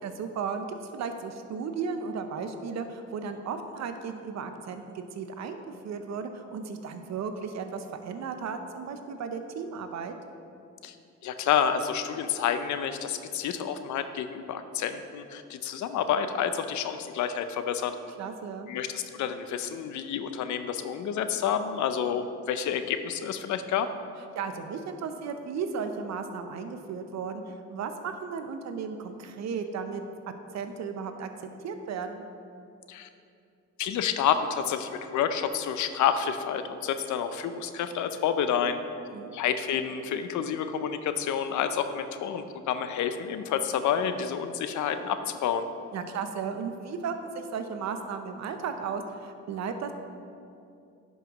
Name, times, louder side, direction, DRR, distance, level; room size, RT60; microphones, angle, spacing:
voice 1, 0.0-10.1 18.2-18.7 24.3-30.0 30.5-32.2 39.1-39.3 45.9-49.9, right 5 dB, 65° right, 7 dB, 0.7 m, -35 dB
voice 2, 11.2-17.9 18.7-23.9 32.9-33.1 33.8-38.8 39.3-45.7, left 8 dB, 70° left, 9 dB, 0.6 m, -29 dB
10.5 x 5.4 x 3.0 m, 2.5 s
cardioid pair, 90°, 30 cm